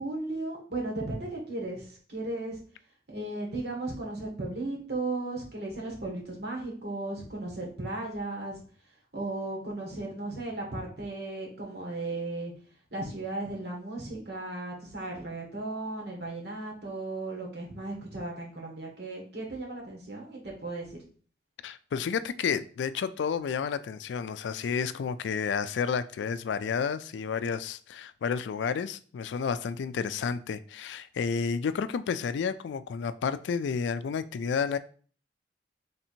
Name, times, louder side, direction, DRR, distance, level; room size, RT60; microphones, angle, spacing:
voice 1, 0.0-2.6 3.1-8.6 9.1-12.5 12.9-21.0, right 2 dB, 70° right, 1.4 m, -36 dB
voice 2, 21.6-34.8, left 6 dB, 90° left, 0.3 m, -31 dB
3.4 x 2.8 x 4.3 m
head